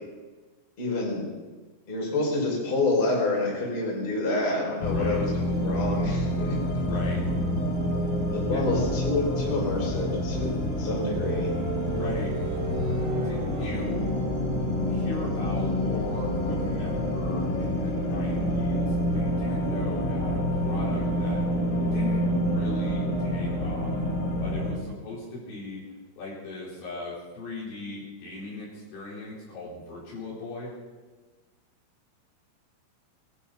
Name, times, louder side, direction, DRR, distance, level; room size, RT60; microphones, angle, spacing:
voice 1, 0.8-1.2 1.9-6.6 8.3-10.5 10.8-11.5, left 2 dB, 25° left, -3 dB, 5.5 m, -28 dB
sound 1, 4.8-24.8, left 1 dB, 85° left, 6.3 m, -27 dB
voice 2, 4.8-5.2 6.8-7.2 8.5-8.6 11.8-12.4 13.2-14.1 14.9-21.4 21.9-24.0 24.4-25.8 26.2-30.7, left 3 dB, 65° left, -6 dB, 6.7 m, -38 dB
sound 2, 9.7-21.2, right 6 dB, 85° right, 2.0 m, -39 dB
21.0 x 11.5 x 5.9 m, 1.3 s
omnidirectional pair, 6.0 m